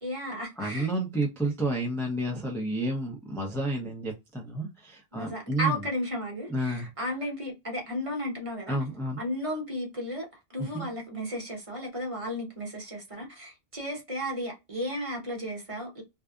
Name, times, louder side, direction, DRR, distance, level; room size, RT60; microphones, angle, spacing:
voice 1, 0.0-0.9 5.1-8.8 9.2-16.0, equal, 35° right, 1.0 m, -34 dB
voice 2, 0.6-5.8 6.5-6.9 8.7-9.2 10.6-10.9, right 1 dB, 5° left, 0.5 m, -30 dB
2.6 x 2.3 x 2.3 m
omnidirectional pair, 1.1 m